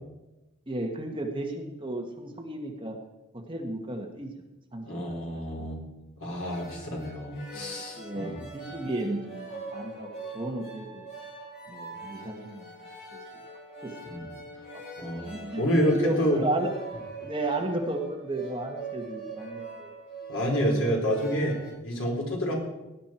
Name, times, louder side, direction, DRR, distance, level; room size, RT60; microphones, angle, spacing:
voice 1, 0.7-3.0 3.5-4.3 4.7-5.7 7.5-11.1 11.7-12.7 13.1-13.4 13.8-13.9 14.7-14.8 15.2-16.7 17.2-19.9 20.6-20.9, right 1 dB, 25° right, 2 dB, 1.5 m, -34 dB
voice 2, 4.9-5.8 6.2-8.3 14.1-14.2 15.0-15.3 15.6-16.4 20.3-21.6 21.8-22.5, equal, 65° left, -1 dB, 4.2 m, -28 dB
sound 1, 6.4-21.7, right 3 dB, 50° left, 6.2 m, -42 dB
19.0 x 10.5 x 4.4 m, 1.0 s
head